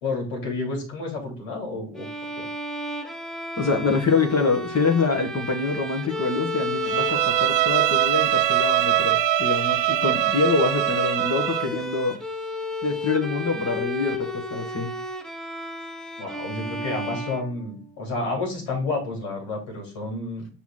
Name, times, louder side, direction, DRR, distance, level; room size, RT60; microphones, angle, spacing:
voice 1, 0.0-2.1 2.4-2.5 16.2-20.5, left 3 dB, 75° left, 3.3 m, -30 dB
Bowed string instrument, 2.0-17.9, equal, ahead, 1.0 m, -32 dB
voice 2, 3.6-12.2 12.8-14.9, left 4 dB, 35° left, 1.6 m, -25 dB
Bowed string instrument 2, 6.8-11.7, right 17 dB, 65° right, 0.6 m, -23 dB
6.1 x 4.5 x 3.8 m
hypercardioid pair, 55°, 47 cm